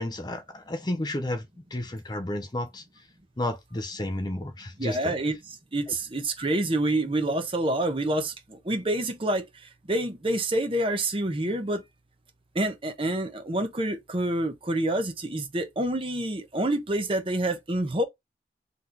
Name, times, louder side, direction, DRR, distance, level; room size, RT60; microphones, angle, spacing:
voice 1, 0.0-1.4 1.7-2.8 3.4-5.2, left 1 dB, 25° left, 0.6 m, -31 dB
voice 2, 4.8-11.8 12.5-18.0, right 1 dB, 30° right, 0.8 m, -27 dB
3.9 x 3.0 x 3.8 m
head